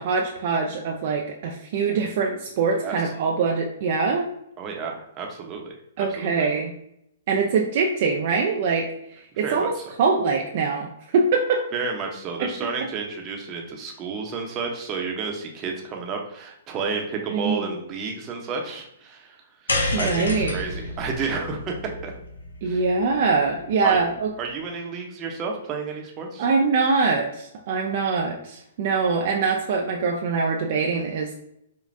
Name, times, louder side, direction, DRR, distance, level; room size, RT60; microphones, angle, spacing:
voice 1, 0.0-4.3 6.0-6.7 7.3-8.9 9.1-9.7 10.0-11.6 12.4-12.5 17.3-17.7 19.9-20.5 22.6-24.3 26.4-31.4, right 4 dB, 50° right, 1 dB, 0.5 m, -23 dB
voice 2, 4.6-6.5 9.3-9.8 11.7-19.4 19.6-21.7 22.0-22.1 22.6-22.8 23.8-24.0 24.4-26.4, right 5 dB, 30° right, 1 dB, 0.8 m, -31 dB
sound 1, 19.7-24.1, left 2 dB, 85° left, 0.8 m, -30 dB
5.1 x 2.3 x 2.6 m, 0.75 s
hypercardioid pair, 125°, 0 cm